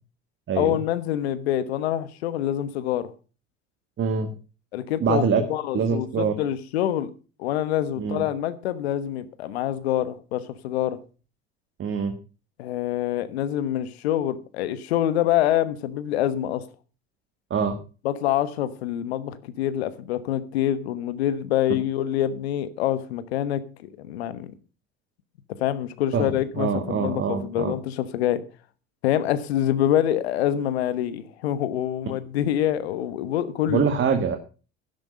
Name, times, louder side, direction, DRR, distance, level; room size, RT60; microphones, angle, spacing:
voice 1, 0.5-3.1 4.7-5.2 5.5-7.1 7.4-11.0 12.6-16.6 18.0-24.5 25.6-28.4 29.0-33.9, left 11 dB, 75° left, 14 dB, 1.2 m, -26 dB
voice 2, 4.0-4.3 5.0-5.4 5.7-6.3 8.0-8.2 11.8-12.1 17.5-17.8 26.1-27.7 33.7-34.4, right 6 dB, 40° right, 7 dB, 1.7 m, -24 dB
11.5 x 10.5 x 5.4 m, 0.35 s
hypercardioid pair, 70°, 32 cm